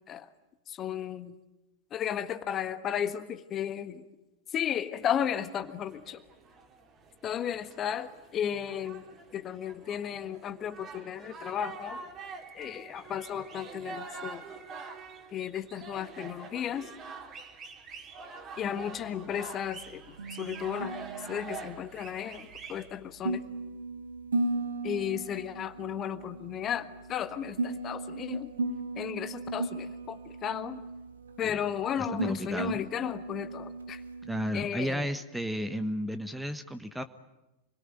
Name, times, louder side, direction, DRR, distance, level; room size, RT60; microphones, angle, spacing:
voice 1, 0.7-1.4 1.9-4.1 4.5-6.2 7.2-9.0 9.3-12.1 12.5-14.4 15.3-16.9 18.6-21.0 21.3-23.4 24.8-28.5 28.9-30.8 31.4-34.0 34.5-35.1, left 9 dB, 30° left, 11 dB, 1.6 m, -34 dB
sound 1, 5.0-22.9, right 4 dB, 30° right, 3.6 m, -46 dB
sound 2, 18.6-34.7, right 2 dB, 70° right, 2.1 m, -37 dB
voice 2, 32.0-32.8 34.2-37.0, equal, 5° right, 10 dB, 1.3 m, -33 dB
28.0 x 22.5 x 9.1 m, 1.0 s
figure-of-eight pair, 90°, 0 cm